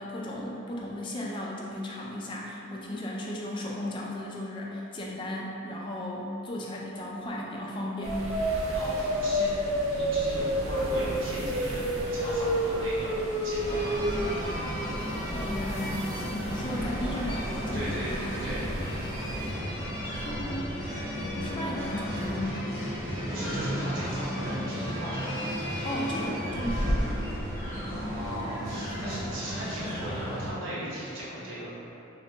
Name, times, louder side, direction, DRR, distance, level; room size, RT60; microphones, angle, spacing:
voice 1, 0.0-8.2 15.3-18.2 20.1-20.7 21.1-22.7 25.8-27.0, left 1 dB, 25° left, -3 dB, 0.3 m, -35 dB
sound 1, 8.0-19.5, equal, 90° right, 0.5 m, -31 dB
voice 2, 8.7-13.9 17.7-18.6 23.3-25.4 27.9-31.7, equal, 75° right, -9 dB, 0.8 m, -37 dB
sound 2, 13.6-30.5, equal, 15° right, 0.9 m, -33 dB
3.2 x 2.1 x 2.8 m, 2.8 s
head